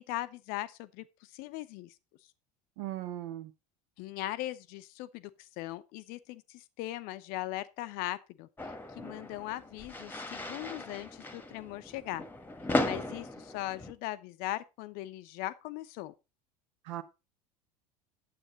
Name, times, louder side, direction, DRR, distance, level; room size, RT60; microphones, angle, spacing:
voice 1, 0.0-1.9 4.0-12.2 12.8-16.1, left 16 dB, 50° left, 0.7 m, -39 dB
voice 2, 2.8-3.5 16.8-17.0, right 13 dB, 55° right, 1.2 m, -38 dB
sound 1, 8.6-13.9, left 2 dB, 10° left, 1.3 m, -36 dB
9.3 x 7.9 x 3.9 m
figure-of-eight pair, 75°, 20 cm